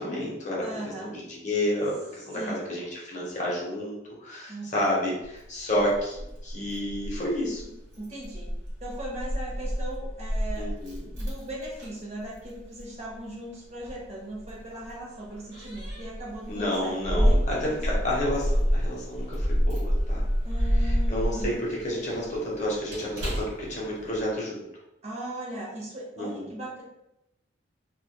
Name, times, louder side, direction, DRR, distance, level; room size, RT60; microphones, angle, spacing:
voice 1, 0.0-0.6 1.0-6.2 6.4-7.6 10.6-11.0 16.5-20.2 20.8-24.6 26.2-26.3, left 1 dB, 35° left, -4 dB, 0.6 m, -30 dB
voice 2, 0.6-1.1 2.3-2.7 4.5-4.9 8.0-8.5 8.8-10.7 11.1-18.0 20.4-21.6 25.0-26.8, right 1 dB, 35° right, -4 dB, 0.6 m, -38 dB
Keys jangling, 5.2-24.3, equal, 70° right, 1.0 m, -29 dB
2.2 x 2.0 x 2.7 m, 0.87 s
head